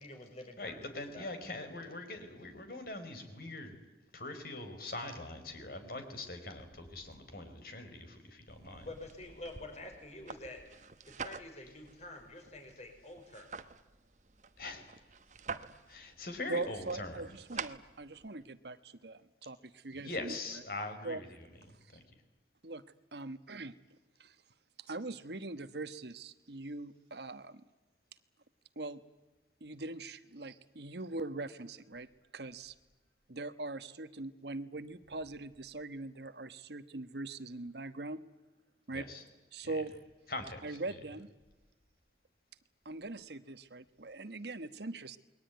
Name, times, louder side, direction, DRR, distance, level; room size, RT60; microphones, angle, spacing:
voice 1, 0.0-0.8 1.1-1.3 8.8-10.6 11.1-13.5, left 2 dB, 40° left, 5 dB, 5.4 m, -48 dB
voice 2, 0.6-3.8 4.1-8.9 14.6-14.8 15.9-17.2 17.5-17.6 19.9-21.5 21.9-22.0 38.9-39.2 39.6-39.8 40.3-40.8, left 2 dB, 55° left, 7 dB, 4.5 m, -42 dB
sound 1, 8.5-18.4, right 5 dB, 45° right, 1.1 m, -48 dB
voice 3, 16.5-20.4 21.0-21.2 22.6-22.8 23.1-23.7 24.2-24.3 24.8-27.6 28.8-29.0 29.6-32.1 32.3-32.7 33.3-38.2 38.9-39.1 39.5-40.0 40.6-41.3 42.8-45.2, right 2 dB, 70° right, 11 dB, 1.2 m, -41 dB
28.5 x 21.5 x 9.4 m, 1.1 s
head